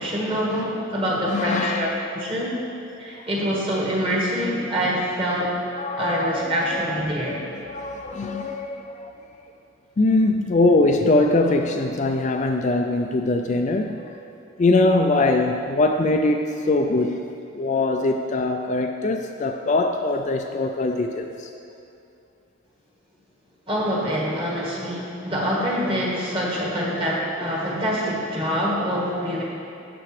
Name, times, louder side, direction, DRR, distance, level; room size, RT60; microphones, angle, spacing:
voice 1, 0.0-2.6 3.0-5.5 6.0-7.4 23.7-29.4, equal, 25° right, -4 dB, 1.6 m, -25 dB
voice 2, 1.3-2.0 5.8-9.1 10.0-14.0 14.6-17.2 17.5-21.5, left 2 dB, 35° left, 4 dB, 0.3 m, -22 dB
12.0 x 7.8 x 3.3 m, 2.7 s
head